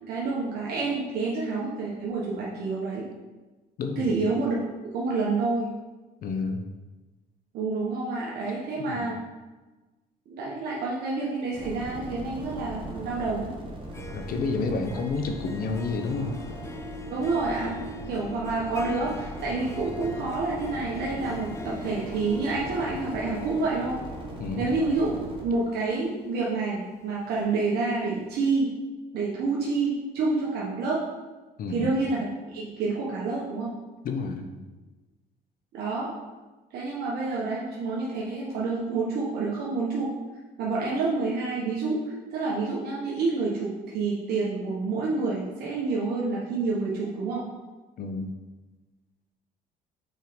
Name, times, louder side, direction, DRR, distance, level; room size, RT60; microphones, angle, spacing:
voice 1, 0.0-3.1 4.0-4.6 4.9-5.7 7.5-9.2 10.3-13.5 17.1-17.8 18.1-24.0 24.6-25.1 25.4-28.7 29.1-31.0 31.7-33.7 35.7-36.1 36.7-40.1 40.6-47.4, right 3 dB, 70° right, -5 dB, 1.4 m, -28 dB
voice 2, 3.8-4.2 6.2-6.6 8.8-9.1 14.1-16.4 24.4-24.7 31.6-31.9 34.0-34.5 48.0-48.3, left 4 dB, 55° left, 5 dB, 0.9 m, -30 dB
sound 1, 11.5-25.4, right 1 dB, 30° right, 1.4 m, -39 dB
Harp, 13.7-27.7, left 3 dB, 15° left, 0.5 m, -43 dB
6.4 x 4.4 x 5.2 m, 1.2 s
cardioid pair, 110°, 17 cm